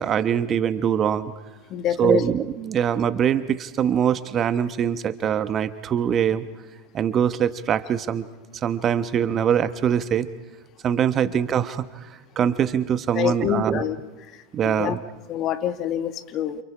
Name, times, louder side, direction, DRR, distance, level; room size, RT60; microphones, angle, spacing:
voice 1, 0.0-1.3 2.0-6.4 6.9-8.3 8.5-10.3 10.8-13.9 14.5-15.0, right 8 dB, 35° right, 13 dB, 1.1 m, -23 dB
voice 2, 1.7-2.2 13.1-14.0 14.6-15.0 15.3-16.6, left 10 dB, 45° left, 11 dB, 1.3 m, -26 dB
29.5 x 27.5 x 4.9 m, 1.2 s
hypercardioid pair, 85°, 0 cm